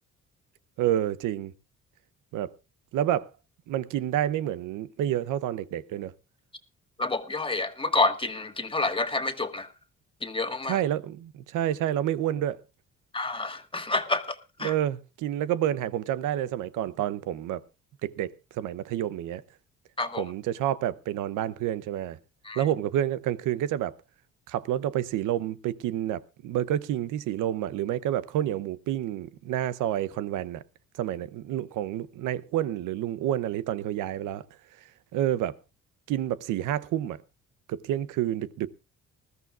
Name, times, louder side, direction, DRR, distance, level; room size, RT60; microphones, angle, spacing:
voice 1, 0.8-1.5 2.3-2.5 2.9-3.3 3.7-6.1 10.7-12.6 14.6-17.6 18.0-19.4 20.2-22.2 22.6-23.9 24.5-30.6 31.0-34.4 35.1-35.5 36.1-37.2 37.7-38.7, right 11 dB, 90° right, 0.8 m, -29 dB
voice 2, 7.0-9.7 10.2-10.8 13.1-14.7 20.0-20.2 22.4-22.6, left 3 dB, 15° left, 1.6 m, -28 dB
20.0 x 14.0 x 2.5 m
cardioid pair, 90°, 30 cm